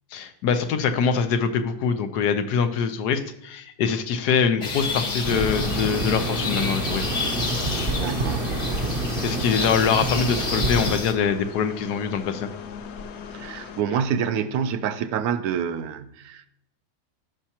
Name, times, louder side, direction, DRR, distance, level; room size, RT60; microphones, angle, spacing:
voice 1, 0.1-7.1 9.2-12.5, left 6 dB, 90° left, 1.3 m, -24 dB
sound 1, 4.6-11.1, left 3 dB, 35° left, 1.0 m, -30 dB
sound 2, 4.8-13.8, left 7 dB, 65° left, 0.7 m, -39 dB
sound 3, 5.2-11.0, right 1 dB, 45° right, 0.9 m, -27 dB
voice 2, 7.9-8.6 13.3-16.5, right 7 dB, 75° right, 1.1 m, -27 dB
14.5 x 5.8 x 2.9 m
omnidirectional pair, 1.7 m